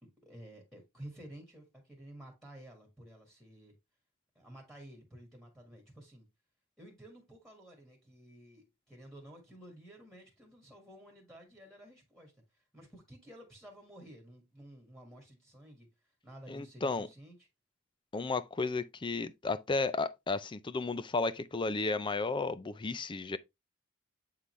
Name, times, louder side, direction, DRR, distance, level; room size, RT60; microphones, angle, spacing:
voice 1, 0.0-3.8 4.4-6.3 6.8-15.9 16.2-17.5, right 1 dB, ahead, 1.8 m, -53 dB
voice 2, 16.5-17.1 18.1-23.4, left 3 dB, 25° left, 0.5 m, -33 dB
8.3 x 3.8 x 3.2 m
head